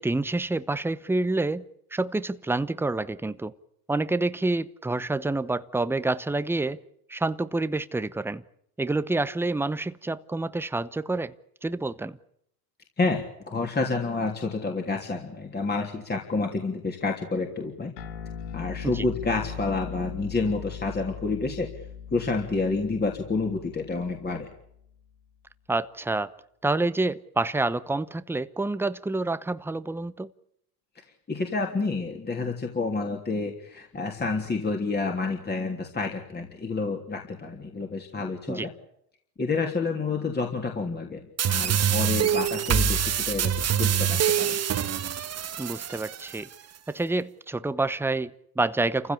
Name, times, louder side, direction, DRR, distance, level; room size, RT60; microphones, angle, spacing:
voice 1, 0.0-1.6 1.9-3.5 3.9-6.8 7.1-8.4 8.8-11.3 11.6-12.2 18.8-19.0 25.7-26.3 26.6-30.3 38.5-38.7 45.6-46.5 46.9-49.1, right 2 dB, 5° right, 0.9 m, -28 dB
voice 2, 13.0-17.9 18.5-21.7 22.1-24.5 31.3-38.7 39.4-44.6, left 3 dB, 20° left, 3.2 m, -29 dB
sound 1, 18.0-24.8, left 7 dB, 80° left, 2.4 m, -39 dB
sound 2, 41.4-46.4, right 8 dB, 30° right, 1.5 m, -25 dB
28.5 x 16.0 x 8.5 m
supercardioid pair, 95°, 49 cm